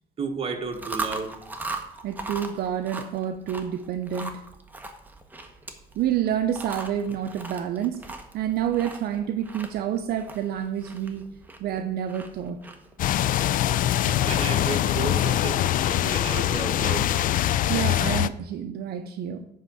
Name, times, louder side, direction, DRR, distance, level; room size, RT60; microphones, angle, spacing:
voice 1, 0.2-1.3 14.0-17.1, right 4 dB, 35° right, 4 dB, 1.4 m, -32 dB
Chewing mastication, 0.6-13.8, right 3 dB, 10° right, 1.1 m, -39 dB
voice 2, 2.0-4.4 5.9-11.2 11.6-12.6 17.7-19.4, right 9 dB, 70° right, 7 dB, 0.6 m, -28 dB
sound 1, 13.0-18.3, left 12 dB, 55° left, 0.4 m, -23 dB
9.5 x 3.7 x 7.0 m, 0.77 s
cardioid pair, 110°, 17 cm